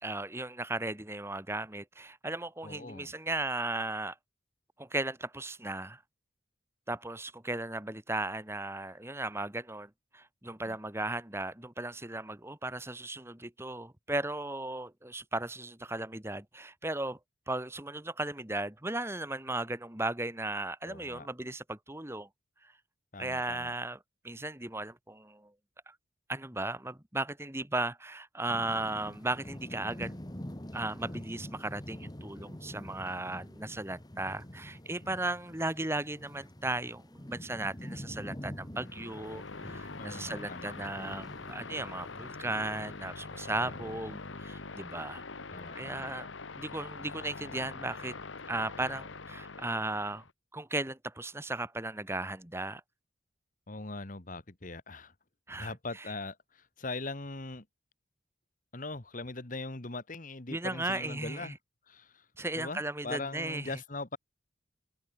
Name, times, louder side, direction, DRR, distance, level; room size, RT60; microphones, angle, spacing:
voice 1, 0.0-4.2 4.8-6.0 6.9-17.2 17.5-22.3 22.6-22.7 23.2-24.0 24.2-25.5 25.9-26.0 26.3-30.2 30.7-45.2 45.7-46.3 46.6-48.2 48.5-50.3 50.5-52.8 55.5-56.1 60.5-61.5 62.4-63.8, right 2 dB, 15° right, 2.1 m, -36 dB
voice 2, 2.6-3.1 10.7-10.8 20.8-21.3 23.1-23.7 35.0-35.1 40.0-40.7 43.6-44.0 45.5-46.1 53.7-55.1 55.6-57.6 58.7-61.6 61.9-62.2 62.5-64.2, left 3 dB, 45° left, 1.6 m, -41 dB
sound 1, 28.5-45.3, equal, 20° left, 1.7 m, -46 dB
sound 2, 38.7-50.3, left 3 dB, 85° left, 1.8 m, -44 dB
head